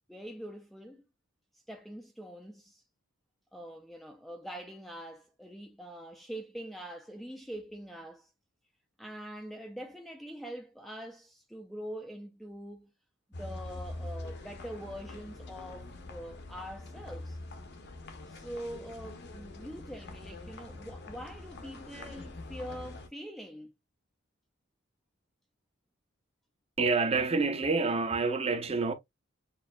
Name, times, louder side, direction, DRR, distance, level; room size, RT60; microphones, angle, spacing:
voice 1, 0.1-1.1 1.7-2.8 3.5-8.3 9.0-12.9 13.4-17.4 18.3-23.7, equal, ahead, 0.4 m, -44 dB
sound 1, 13.3-23.1, left 2 dB, 55° left, 0.7 m, -44 dB
voice 2, 26.8-28.9, right 4 dB, 30° right, 0.7 m, -27 dB
6.7 x 2.7 x 2.2 m
head